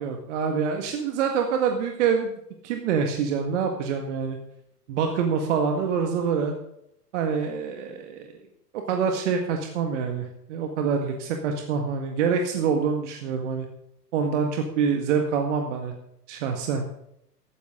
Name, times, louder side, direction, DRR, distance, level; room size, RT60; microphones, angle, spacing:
voice 1, 0.0-2.3 2.6-4.4 4.9-6.5 7.1-8.3 8.7-13.7 14.1-15.9 16.3-16.8, right 6 dB, 45° right, 4 dB, 2.0 m, -26 dB
16.5 x 12.5 x 3.9 m, 0.77 s
figure-of-eight pair, 110°, 49 cm